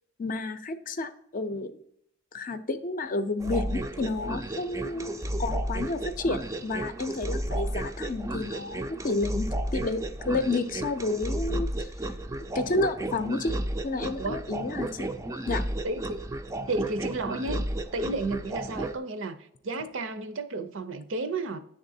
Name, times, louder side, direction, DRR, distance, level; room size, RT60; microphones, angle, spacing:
voice 1, 0.2-1.7 2.3-9.5 9.7-12.1 12.5-13.6 13.8-15.1 15.5-15.6, left 3 dB, 45° left, 9 dB, 0.5 m, -31 dB
sound 1, 3.4-19.0, right 1 dB, 15° right, 0.4 m, -33 dB
voice 2, 15.8-16.2 16.7-17.6 17.9-21.6, right 2 dB, 70° right, 10 dB, 0.6 m, -32 dB
9.6 x 3.6 x 2.7 m, 0.73 s
head